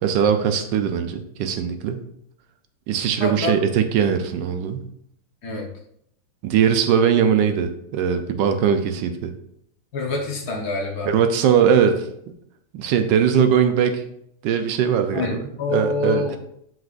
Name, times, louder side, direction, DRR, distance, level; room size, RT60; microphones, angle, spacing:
voice 1, 0.0-2.0 2.9-4.9 6.4-9.3 11.1-12.1 12.7-14.0 14.4-16.4, right 7 dB, 75° right, 7 dB, 1.1 m, -20 dB
voice 2, 3.2-3.5 5.4-5.7 9.9-11.1 15.1-16.4, left 3 dB, 50° left, 0 dB, 1.4 m, -26 dB
7.4 x 6.0 x 2.5 m, 0.72 s
omnidirectional pair, 2.4 m